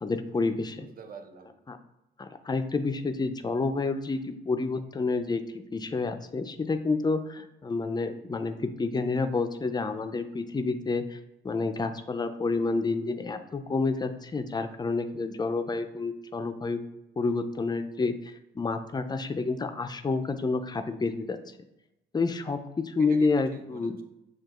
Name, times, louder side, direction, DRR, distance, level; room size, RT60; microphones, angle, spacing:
voice 1, 0.0-0.9 1.7-1.8 2.2-11.2 11.4-16.8 17.2-21.4 22.1-22.6 22.8-24.0, left 3 dB, 20° left, 8 dB, 0.4 m, -29 dB
voice 2, 0.8-1.6 23.0-24.0, right 6 dB, 45° right, 4 dB, 0.7 m, -46 dB
6.6 x 2.3 x 3.0 m, 0.92 s
cardioid pair, 90°, 20 cm